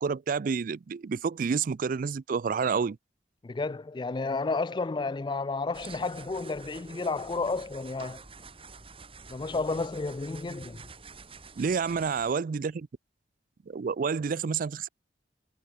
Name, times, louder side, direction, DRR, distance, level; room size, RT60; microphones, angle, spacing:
voice 1, 0.0-3.0 11.6-12.9 13.7-14.9, right 5 dB, 50° right, 0.4 m, -29 dB
voice 2, 3.4-8.2 9.3-10.8, left 3 dB, 25° left, 0.4 m, -31 dB
sound 1, 5.7-12.3, right 4 dB, 30° right, 4.0 m, -48 dB
head